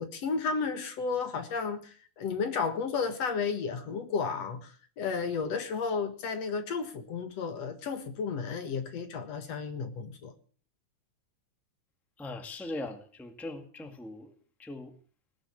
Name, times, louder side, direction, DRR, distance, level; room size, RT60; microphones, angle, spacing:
voice 1, 0.0-10.3, left 5 dB, 60° left, 8 dB, 2.6 m, -33 dB
voice 2, 12.2-14.9, left 2 dB, ahead, 6 dB, 1.5 m, -40 dB
19.5 x 10.5 x 7.3 m, 0.43 s
omnidirectional pair, 3.4 m